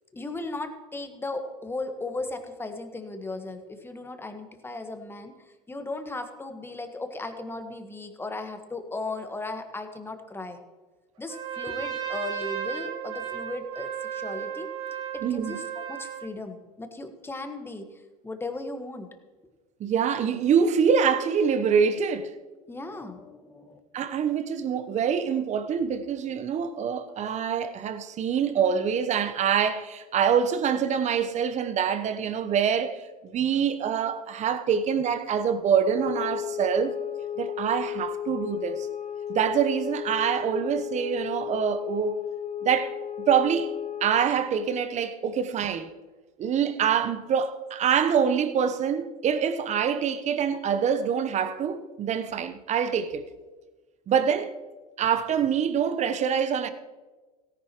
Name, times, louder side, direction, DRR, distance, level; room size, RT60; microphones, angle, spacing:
voice 1, 0.1-10.6 11.2-14.7 15.1-19.1 22.7-23.8, left 2 dB, 10° left, 1.5 m, -36 dB
Trumpet, 11.2-16.3, right 9 dB, 55° right, 3.3 m, -34 dB
voice 2, 15.2-15.6 19.8-22.3 23.9-37.0 37.4-38.9 39.3-42.2 42.6-43.0 43.3-43.7 44.0-45.9 46.4-53.2 54.1-54.5 55.0-56.7, right 7 dB, 35° right, 1.0 m, -25 dB
sound 1, 35.9-44.3, left 10 dB, 35° left, 1.0 m, -34 dB
17.5 x 10.5 x 3.1 m
hypercardioid pair, 80°, 19 cm